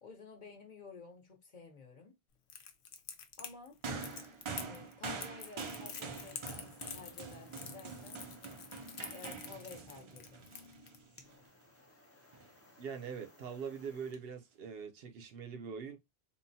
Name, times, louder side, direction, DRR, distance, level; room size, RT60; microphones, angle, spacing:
voice 1, 0.0-2.1 3.4-3.8 4.6-8.2 9.1-10.5, left 4 dB, 50° left, 0.8 m, -52 dB
Crackle, 2.5-11.0, left 7 dB, 80° left, 0.8 m, -47 dB
sound 1, 3.8-11.3 12.3-12.5, right 4 dB, 45° right, 0.4 m, -45 dB
sound 2, 5.7-14.2, left 2 dB, 20° left, 0.4 m, -62 dB
voice 2, 12.8-16.0, right 6 dB, 75° right, 0.8 m, -43 dB
3.7 x 2.1 x 2.6 m
omnidirectional pair, 1.1 m